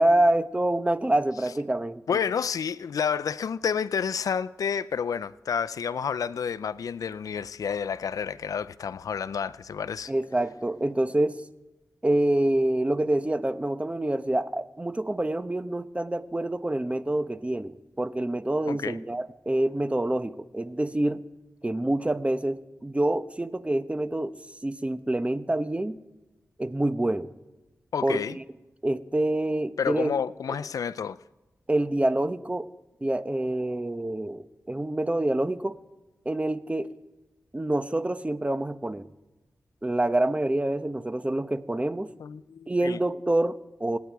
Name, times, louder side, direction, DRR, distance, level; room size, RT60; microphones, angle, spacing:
voice 1, 0.0-2.0 10.1-11.4 12.0-21.2 21.6-24.3 24.6-26.0 26.6-27.3 28.0-28.4 28.8-30.1 31.7-32.7 33.0-35.7 36.2-36.9 37.5-39.1 39.8-42.1 42.7-44.0, right 1 dB, 20° right, 12 dB, 0.9 m, -26 dB
voice 2, 2.1-10.1 18.7-19.0 27.9-28.4 29.8-31.2 42.2-43.0, left 7 dB, 85° left, 17 dB, 0.4 m, -30 dB
26.5 x 9.5 x 4.6 m, 1.1 s
cardioid pair, 50°, 6 cm